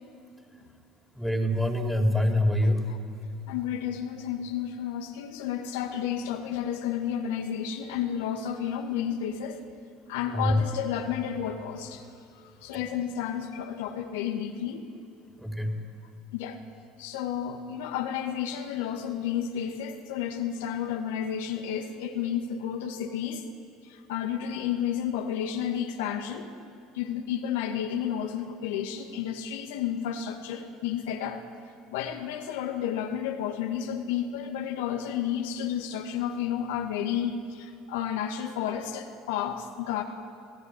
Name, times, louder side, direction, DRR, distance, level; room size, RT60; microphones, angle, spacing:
voice 1, 1.1-2.8 10.3-10.6 12.7-12.8 15.4-15.7, left 1 dB, ahead, 2 dB, 4.5 m, -25 dB
voice 2, 3.5-9.6 10.1-12.1 12.4-14.9 16.3-16.6 17.0-23.5 23.9-26.5 26.9-31.4 31.9-40.0, left 9 dB, 75° left, 4 dB, 2.1 m, -31 dB
28.0 x 18.0 x 10.0 m, 2.4 s
hypercardioid pair, 70°, 0 cm